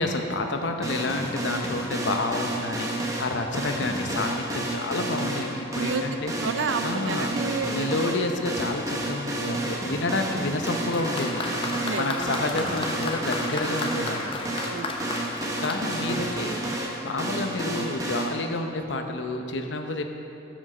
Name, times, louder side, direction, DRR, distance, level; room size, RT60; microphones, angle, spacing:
voice 1, 0.0-6.3 6.8-7.4 7.7-14.5 15.6-20.1, left 2 dB, 80° left, 5 dB, 0.8 m, -29 dB
sound 1, 0.8-18.3, right 1 dB, 20° right, 1.0 m, -31 dB
voice 2, 6.4-7.7 8.0-8.2 11.7-12.8 14.6-15.2, right 4 dB, 85° right, 9 dB, 0.5 m, -31 dB
Applause, 10.6-17.1 18.0-18.1, left 2 dB, 30° left, 0.7 m, -34 dB
9.1 x 6.2 x 6.4 m, 2.8 s
head